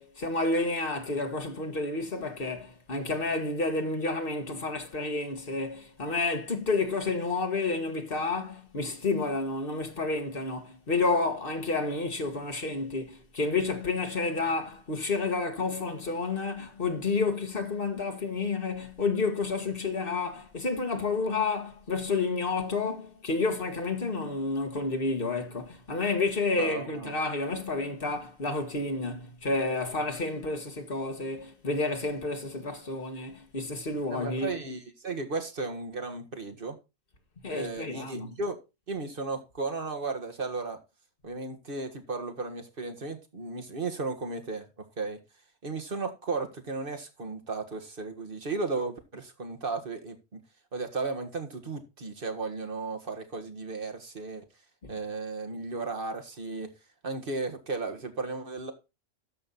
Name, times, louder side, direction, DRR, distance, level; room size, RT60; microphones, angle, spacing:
voice 1, 0.0-34.5 37.4-38.3 54.8-54.9, left 3 dB, 55° left, 1.8 m, -30 dB
voice 2, 26.5-27.1 34.1-36.8 37.5-38.5 38.9-40.8 41.2-44.7 45.0-45.2 45.6-50.2 50.7-54.5 54.9-56.7 57.0-58.7, right 3 dB, 55° right, 1.9 m, -35 dB
13.0 x 5.5 x 4.1 m
omnidirectional pair, 1.1 m